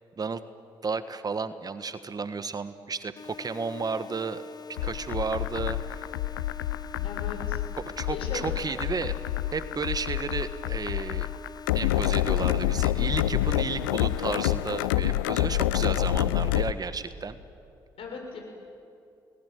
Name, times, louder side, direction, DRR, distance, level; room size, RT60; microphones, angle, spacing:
voice 1, 0.8-4.4 4.8-6.1 7.0-7.1 7.8-9.2 9.5-11.3 11.7-17.4, right 4 dB, 40° right, 12 dB, 1.5 m, -33 dB
sound 1, 3.2-14.9, left 5 dB, 40° left, 1.2 m, -45 dB
sound 2, 4.8-16.7, left 14 dB, 85° left, 0.6 m, -28 dB
voice 2, 7.0-7.6 8.1-8.6 18.0-18.4, left 4 dB, 60° left, 2 dB, 6.5 m, -37 dB
29.5 x 20.0 x 9.4 m, 2.6 s
hypercardioid pair, 50°, 11 cm